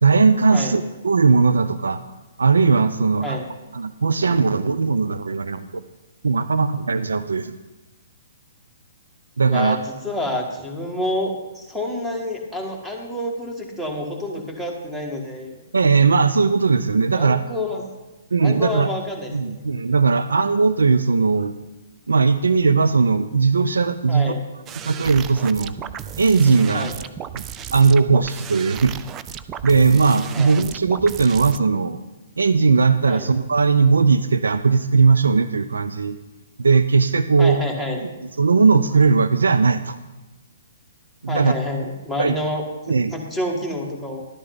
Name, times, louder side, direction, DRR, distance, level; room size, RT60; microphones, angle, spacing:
voice 1, 0.0-2.0 2.4-3.4 3.7-5.8 6.2-7.5 9.4-9.8 15.7-17.4 18.3-18.9 19.3-21.5 22.1-24.3 24.8-25.8 26.2-26.9 27.4-27.5 27.7-28.9 29.6-32.0 32.4-36.2 36.6-37.6 38.0-38.1 38.4-40.0 41.2-41.6 42.2-42.4 42.9-43.1, right 4 dB, 85° right, 12 dB, 0.5 m, -18 dB
voice 2, 9.5-15.5 17.1-17.9 18.4-19.6 24.1-24.5 26.7-26.9 30.3-30.6 33.1-33.3 37.4-38.0 41.3-44.2, left 1 dB, 5° right, 0 dB, 2.0 m, -28 dB
sound 1, 24.7-31.6, right 9 dB, 25° right, 0.4 m, -35 dB
12.0 x 9.6 x 3.9 m, 1.1 s
hypercardioid pair, 135°, 0 cm